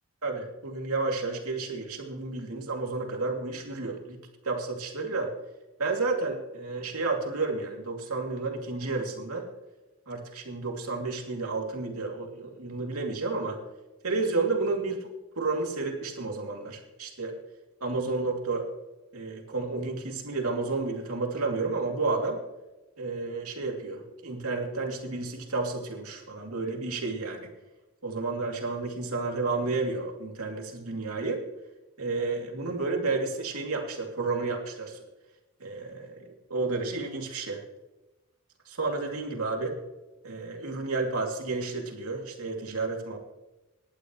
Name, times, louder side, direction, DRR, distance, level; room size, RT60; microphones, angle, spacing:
voice 1, 0.2-4.2 4.4-5.3 5.8-9.5 10.1-13.6 14.0-15.1 15.4-17.3 17.8-18.7 19.1-22.4 23.0-27.5 28.0-31.4 32.0-35.0 35.6-37.6 38.7-39.8 40.2-43.2, right 3 dB, 85° right, 1 dB, 2.8 m, -31 dB
19.0 x 11.5 x 3.2 m, 1.0 s
head